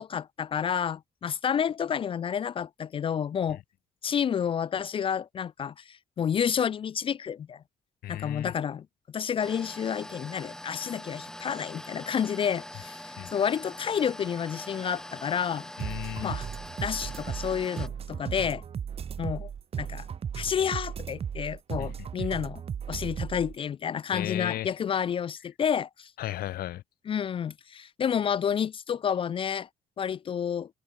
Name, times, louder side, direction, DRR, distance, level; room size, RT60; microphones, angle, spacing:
voice 1, 0.0-3.6 4.0-7.6 8.1-8.9 9.1-15.7 16.2-16.5 16.8-18.6 19.2-19.5 19.8-20.1 20.4-22.6 22.9-26.1 27.1-29.7 30.0-30.7, left 8 dB, 35° left, 0.4 m, -30 dB
voice 2, 8.0-8.5 13.2-13.3 15.8-16.3 21.8-22.3 24.1-24.7 26.2-26.8, left 14 dB, 80° left, 1.1 m, -35 dB
sound 1, 9.4-17.9, left 1 dB, 5° left, 1.7 m, -43 dB
sound 2, 15.8-23.5, right 8 dB, 40° right, 1.6 m, -36 dB
cardioid pair, 150°, 15 cm